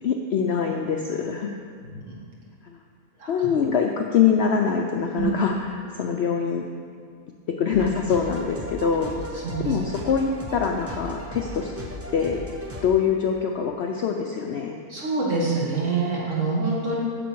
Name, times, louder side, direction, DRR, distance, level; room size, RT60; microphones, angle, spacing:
voice 1, 0.0-1.5 2.6-2.8 3.3-6.7 7.6-11.7 12.1-12.4 12.8-14.8, left 6 dB, 65° left, 2 dB, 0.6 m, -24 dB
voice 2, 1.8-2.2 3.2-3.5 5.1-5.2 9.3-9.8 14.9-17.0, right 3 dB, 55° right, -5 dB, 2.2 m, -26 dB
sound 1, 7.7-12.9, equal, 15° right, 0.4 m, -36 dB
9.2 x 6.9 x 4.6 m, 2.1 s
omnidirectional pair, 1.6 m